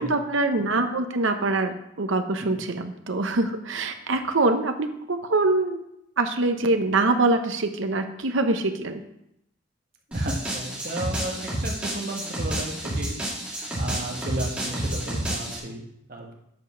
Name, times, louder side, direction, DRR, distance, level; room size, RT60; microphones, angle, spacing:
voice 1, 0.0-5.8 6.2-9.0, right 2 dB, 70° right, 7 dB, 0.8 m, -24 dB
sound 1, 10.1-15.6, right 1 dB, 5° right, 2.4 m, -30 dB
voice 2, 10.1-13.2 13.5-16.4, right 1 dB, 45° right, 0 dB, 1.3 m, -34 dB
8.0 x 5.1 x 5.6 m, 0.82 s
head